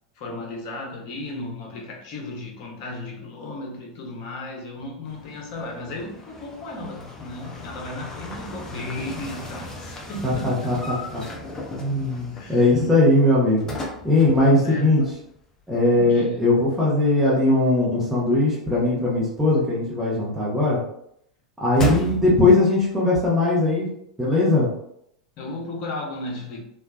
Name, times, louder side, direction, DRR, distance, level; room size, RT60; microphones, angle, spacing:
voice 1, 0.2-10.8 12.3-12.7 14.6-15.1 15.9-16.5 21.8-22.3 25.4-26.6, left 2 dB, 45° left, -1 dB, 0.8 m, -35 dB
sound 1, 5.1-15.4 15.6-15.7 21.8-22.7, left 1 dB, 15° left, 0.6 m, -35 dB
voice 2, 10.2-11.2 11.7-13.7 14.0-15.0 15.7-20.8 21.6-23.9 24.2-24.7, left 2 dB, 5° right, -8 dB, 1.0 m, -19 dB
3.2 x 2.3 x 2.3 m, 0.73 s
figure-of-eight pair, 90°, 3 cm